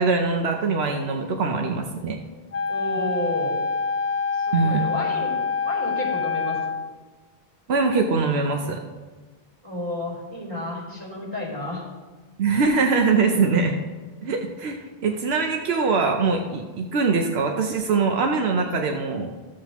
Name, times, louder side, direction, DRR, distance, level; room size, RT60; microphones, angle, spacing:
voice 1, 0.0-2.2 4.5-4.9 7.7-8.8 12.4-13.8 14.2-19.3, right 4 dB, 85° right, 3 dB, 1.0 m, -22 dB
Wind instrument woodwind instrument, 2.5-6.9, left 5 dB, 50° left, 0.6 m, -26 dB
voice 2, 2.7-3.6 4.3-6.8 9.6-11.9, left 1 dB, 30° right, -4 dB, 3.4 m, -31 dB
13.5 x 7.5 x 3.0 m, 1.3 s
omnidirectional pair, 1.0 m